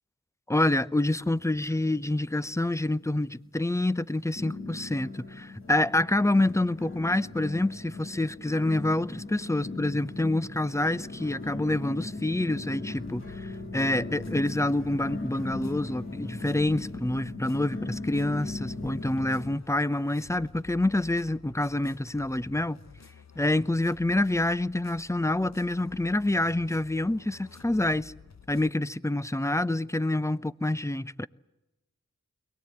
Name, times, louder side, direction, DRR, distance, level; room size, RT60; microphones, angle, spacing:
voice 1, 0.5-22.8 23.4-28.1 28.5-31.3, left 1 dB, 10° left, 0.7 m, -27 dB
sound 1, 1.2-2.1 2.4-3.0 3.5-3.6 4.4-19.5, left 2 dB, 45° left, 2.2 m, -38 dB
sound 2, 12.9-28.7, left 6 dB, 65° left, 1.2 m, -52 dB
22.5 x 19.0 x 8.9 m
wide cardioid pair, 50°, 29 cm